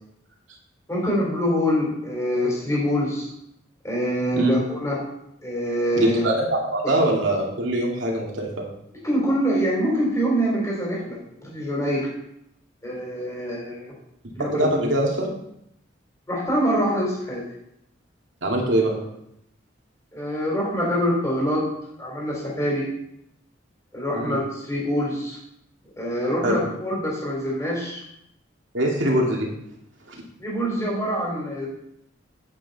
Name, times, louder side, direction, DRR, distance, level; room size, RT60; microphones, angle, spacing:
voice 1, 0.9-3.3 3.8-5.0 5.4-6.2 9.0-12.1 12.8-13.9 14.4-14.7 16.3-17.4 20.1-21.7 22.0-22.8 23.9-25.4 26.0-28.0 30.4-31.7, equal, 15° left, -4 dB, 3.5 m, -25 dB
voice 2, 5.9-8.7 14.5-15.3 18.4-19.0 24.1-24.4 26.4-26.6 28.7-29.5 30.1-30.2, right 1 dB, 75° right, -1 dB, 2.3 m, -23 dB
9.0 x 8.3 x 4.1 m, 0.77 s
head